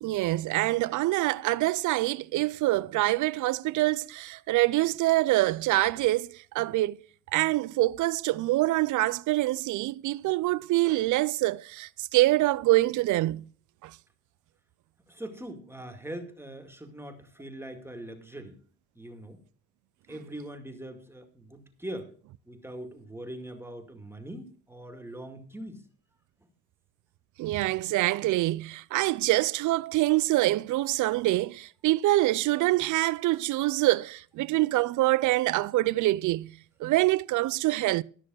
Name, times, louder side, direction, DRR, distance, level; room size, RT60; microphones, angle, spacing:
voice 1, 0.0-7.0 7.3-13.4 13.8-14.0 27.4-38.0, right 17 dB, 80° right, 0.5 m, -25 dB
voice 2, 15.1-18.6 19.0-19.4 20.1-22.1 22.5-25.8, right 1 dB, 10° right, 2.1 m, -41 dB
13.5 x 6.4 x 6.2 m
cardioid pair, 90°, 30 cm